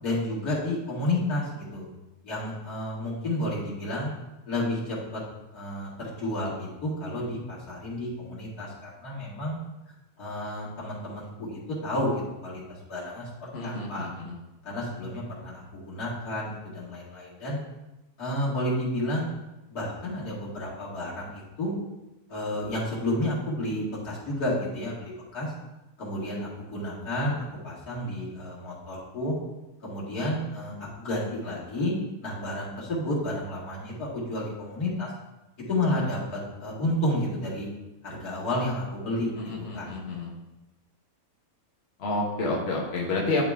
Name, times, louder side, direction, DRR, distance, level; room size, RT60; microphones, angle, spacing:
voice 1, 0.0-1.8 2.2-4.1 4.5-5.2 5.5-9.6 9.9-12.6 12.9-14.1 14.6-17.6 18.2-19.3 19.7-21.7 22.3-25.5 26.0-29.3 29.8-31.9 32.2-35.1 35.7-37.7 38.0-39.3 39.7-39.9, left 1 dB, 80° left, -7 dB, 2.7 m, -31 dB
voice 2, 13.5-14.3 39.4-40.3 42.0-43.4, left 2 dB, 45° left, -2 dB, 1.3 m, -29 dB
11.0 x 4.0 x 3.5 m, 1.0 s
omnidirectional pair, 1.6 m